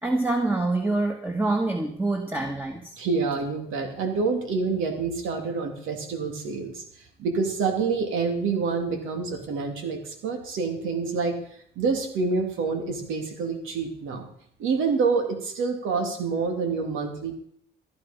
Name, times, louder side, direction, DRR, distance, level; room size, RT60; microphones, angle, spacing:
voice 1, 0.0-2.9, right 2 dB, 10° right, 4 dB, 1.8 m, -26 dB
voice 2, 2.9-6.8 7.2-11.4 11.7-14.3 14.6-17.3, right 4 dB, 85° right, 4 dB, 3.1 m, -27 dB
15.0 x 10.5 x 5.5 m, 0.65 s
cardioid pair, 90°, 20 cm